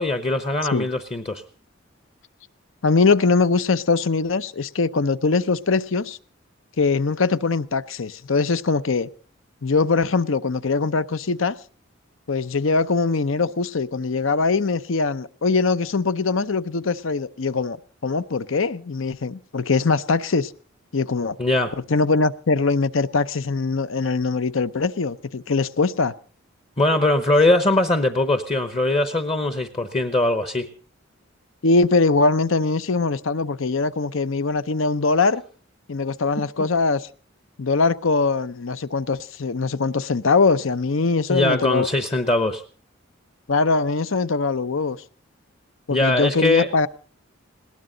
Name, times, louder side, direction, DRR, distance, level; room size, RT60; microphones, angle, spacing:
voice 1, 0.0-1.4 21.4-21.7 26.8-30.7 36.4-36.7 41.3-42.6 45.9-46.7, left 2 dB, 30° left, 9 dB, 0.8 m, -21 dB
voice 2, 2.8-6.2 6.8-9.1 9.6-11.6 12.3-17.8 18.0-20.5 20.9-21.4 21.9-26.1 31.6-35.4 35.9-37.1 37.6-41.9 43.5-45.0 45.9-46.9, left 4 dB, 75° left, 14 dB, 0.7 m, -22 dB
20.0 x 18.0 x 3.9 m, 0.39 s
head